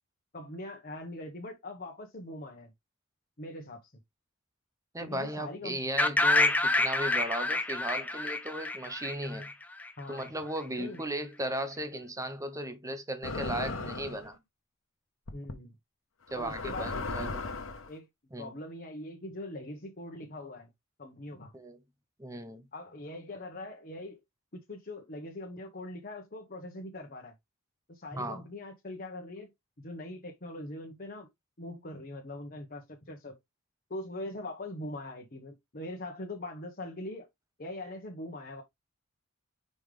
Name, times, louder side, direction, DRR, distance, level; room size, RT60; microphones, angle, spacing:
voice 1, 0.3-2.7 3.4-3.9 5.0-5.8 10.0-10.3 10.8-11.0 15.3-15.7 16.3-17.1 17.9-18.1 18.4-20.7 21.0-21.5 22.7-24.2 24.5-27.3 27.9-29.5 29.8-31.3 31.6-33.4 33.9-37.3 37.6-38.6, left 1 dB, 45° left, 1.3 m, -42 dB
voice 2, 4.9-9.5 10.1-14.4 16.3-17.4 18.3-18.5 21.5-21.8 22.2-22.7 28.1-28.4, right 1 dB, 15° right, 1.0 m, -36 dB
sound 1, 6.0-9.9, left 2 dB, 10° left, 0.7 m, -27 dB
sound 2, 13.2-14.3 15.3-15.5 16.3-17.9, left 3 dB, 65° left, 1.2 m, -36 dB
5.7 x 5.4 x 3.3 m
head